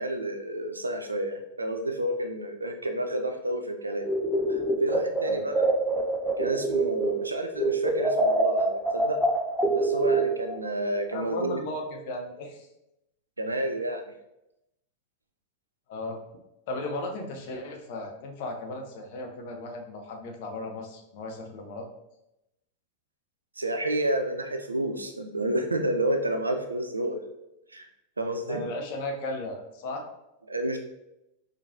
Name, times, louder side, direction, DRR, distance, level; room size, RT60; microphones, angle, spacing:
voice 1, 0.0-4.1 4.5-5.6 6.4-9.2 9.7-11.6 13.4-14.0 23.6-27.2 27.7-27.9 28.2-28.6 30.5-30.8, right 1 dB, 80° right, 5 dB, 0.4 m, -30 dB
sound 1, 4.0-7.3 7.6-10.6, right 2 dB, 5° right, 0.6 m, -25 dB
voice 2, 5.2-5.6 11.1-12.7 15.9-16.2 16.7-21.8 28.5-30.0, left 1 dB, 50° left, 3 dB, 0.6 m, -36 dB
4.6 x 2.4 x 2.6 m, 0.89 s
figure-of-eight pair, 90°, 0 cm